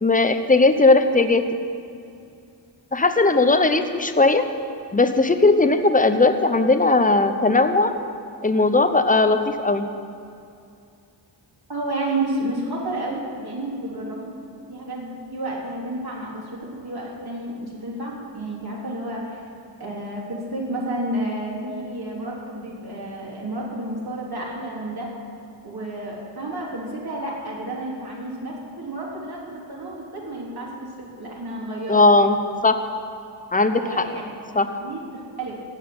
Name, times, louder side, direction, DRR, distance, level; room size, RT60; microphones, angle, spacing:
voice 1, 0.0-1.4 2.9-4.4 4.9-7.9 8.4-9.8 31.9-32.4 32.6-32.8 33.5-34.0 34.5-34.7, left 3 dB, 20° left, 8 dB, 0.9 m, -18 dB
voice 2, 11.7-14.3 14.7-19.4 19.8-25.1 25.6-32.0 33.7-34.2 34.7-35.6, right 1 dB, 55° right, -4 dB, 3.6 m, -31 dB
16.5 x 6.6 x 9.6 m, 2.5 s
wide cardioid pair, 90°, 45 cm